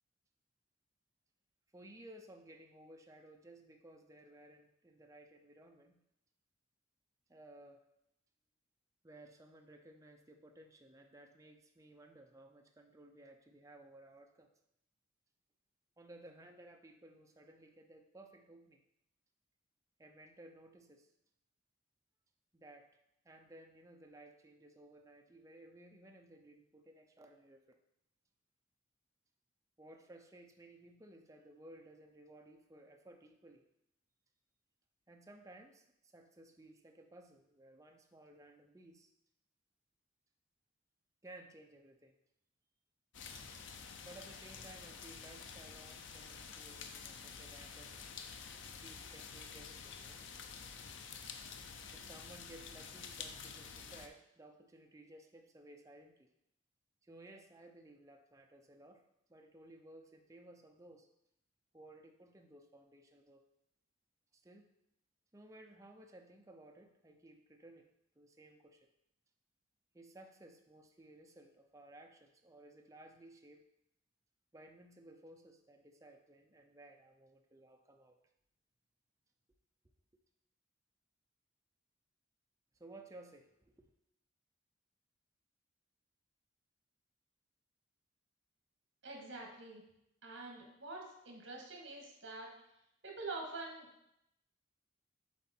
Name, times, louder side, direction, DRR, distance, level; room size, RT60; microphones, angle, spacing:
voice 1, 1.7-6.0 7.3-7.9 9.0-14.5 16.0-18.8 20.0-21.1 22.5-22.9 23.2-27.8 29.8-33.6 35.1-39.1 41.2-42.1 44.0-47.9 48.8-50.2 51.9-56.3 57.0-59.0 59.3-61.1 61.7-63.4 64.3-64.7 65.3-68.9 69.9-73.7 74.5-78.2 82.8-83.9, right 1 dB, 15° right, 3 dB, 0.6 m, -58 dB
sound 1, 43.1-54.1, left 6 dB, 70° left, 0.6 m, -49 dB
voice 2, 89.0-89.8 90.2-92.5 93.0-93.9, right 3 dB, 70° right, 0 dB, 1.8 m, -46 dB
7.3 x 4.1 x 4.4 m, 0.81 s
head